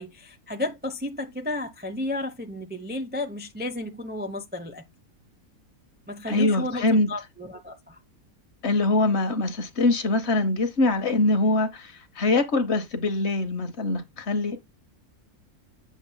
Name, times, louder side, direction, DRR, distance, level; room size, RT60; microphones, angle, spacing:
voice 1, 0.0-4.8 6.1-8.0, left 1 dB, 15° right, 0.4 m, -33 dB
voice 2, 6.3-7.1 8.6-14.6, left 2 dB, 50° left, 1.2 m, -23 dB
7.3 x 7.2 x 2.2 m
omnidirectional pair, 1.5 m